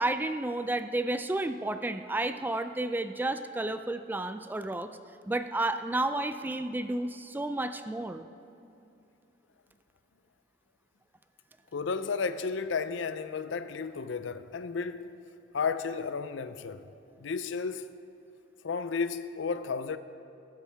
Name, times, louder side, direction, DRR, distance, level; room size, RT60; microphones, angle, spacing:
voice 1, 0.0-4.9 5.3-8.3, right 2 dB, 10° right, 0.3 m, -31 dB
voice 2, 11.7-15.1 15.5-16.8 17.2-17.9 18.6-20.0, left 5 dB, 70° left, 0.5 m, -33 dB
14.5 x 12.5 x 3.4 m
head